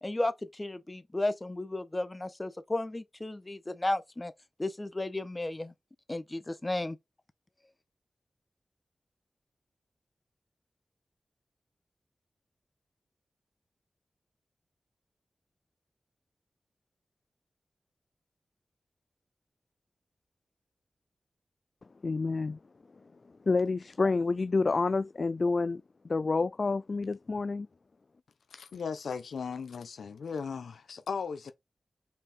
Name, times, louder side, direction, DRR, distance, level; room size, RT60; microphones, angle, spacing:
voice 1, 0.0-4.3 4.6-5.7 6.1-7.0, left 2 dB, 25° left, 1.3 m, -33 dB
voice 2, 22.0-22.6 23.5-27.7, left 3 dB, 55° left, 0.3 m, -28 dB
voice 3, 28.5-31.5, left 6 dB, 85° left, 0.8 m, -37 dB
5.5 x 4.6 x 4.4 m
cardioid pair, 45°, 0 cm